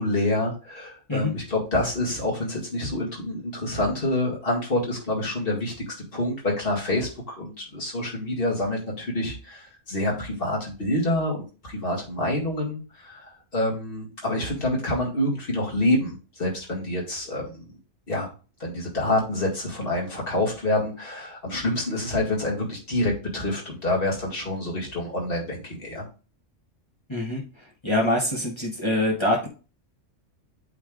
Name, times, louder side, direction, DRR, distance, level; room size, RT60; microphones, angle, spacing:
voice 1, 0.0-17.8 18.1-18.3 18.6-26.0, left 1 dB, 50° left, -2 dB, 2.2 m, -27 dB
voice 2, 27.1-27.4 27.8-29.5, left 1 dB, 25° left, -3 dB, 1.3 m, -24 dB
8.3 x 3.2 x 3.8 m, 0.34 s
omnidirectional pair, 1.3 m